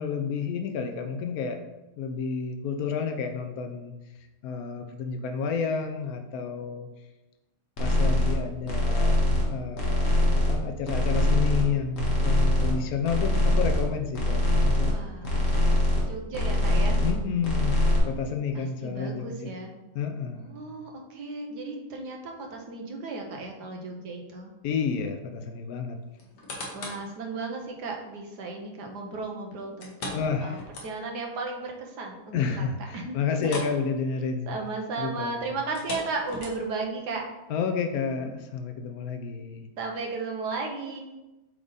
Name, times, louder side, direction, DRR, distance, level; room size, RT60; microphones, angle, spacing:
voice 1, 0.0-1.6 2.0-3.9 4.4-6.9 7.8-15.0 17.0-19.5 19.9-20.6 24.6-26.0 30.1-30.6 32.3-34.6 35.0-35.6 37.5-39.7, left 6 dB, 80° left, 6 dB, 0.8 m, -30 dB
sound 1, 7.8-8.3 8.6-9.5 9.7-10.6 10.8-11.7 11.9-12.7 13.0-13.9 14.1-14.9 15.2-16.1 16.3-17.2 17.4-18.0, left 1 dB, 35° left, 1.4 m, -23 dB
voice 2, 14.8-17.0 18.5-19.7 20.3-24.5 26.7-32.7 32.9-33.2 33.4-33.6 34.5-37.2 39.8-41.0, right 3 dB, 55° right, 1 dB, 1.4 m, -35 dB
sound 2, 26.2-27.1 27.6-27.7 29.8-31.3 31.6-31.7 32.1-32.2 33.4-33.8 34.1-34.3 35.6-36.9 37.5-37.6, left 1 dB, 55° left, 1.8 m, -39 dB
7.9 x 3.7 x 4.0 m, 1.0 s
omnidirectional pair, 2.3 m